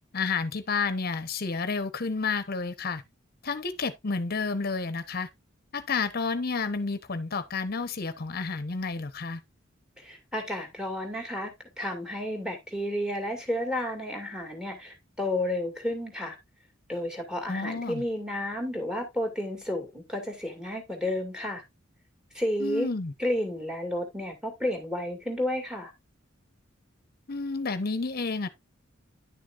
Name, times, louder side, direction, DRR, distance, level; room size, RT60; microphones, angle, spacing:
voice 1, 0.1-3.0 3.4-5.3 5.7-9.4 17.5-18.0 22.6-23.1 27.3-28.5, left 4 dB, 50° left, 1.0 m, -30 dB
voice 2, 10.0-16.4 16.9-21.6 22.3-22.9 23.2-25.9, left 1 dB, 5° right, 2.4 m, -31 dB
10.5 x 6.5 x 2.5 m
head